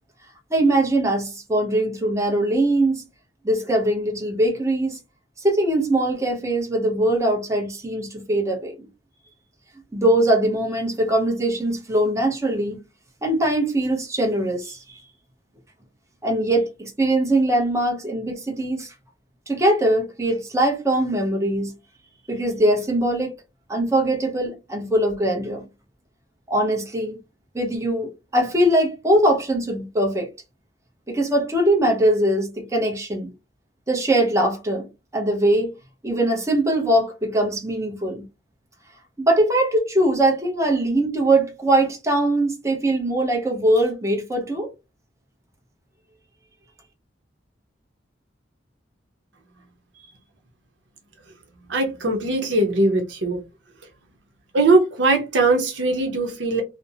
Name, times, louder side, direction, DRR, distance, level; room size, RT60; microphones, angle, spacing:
voice 1, 0.5-3.0 3.4-5.0 5.4-8.7 9.9-12.8 13.2-15.0 16.2-18.9 19.5-21.7 22.3-23.3 23.7-25.6 26.5-27.2 27.5-30.3 31.1-33.3 33.9-34.8 35.1-35.7 36.0-38.2 39.3-44.7, right 1 dB, 15° right, 0.7 m, -21 dB
voice 2, 51.7-53.4 54.5-56.6, right 2 dB, 80° right, 0.7 m, -20 dB
2.5 x 2.0 x 2.7 m
head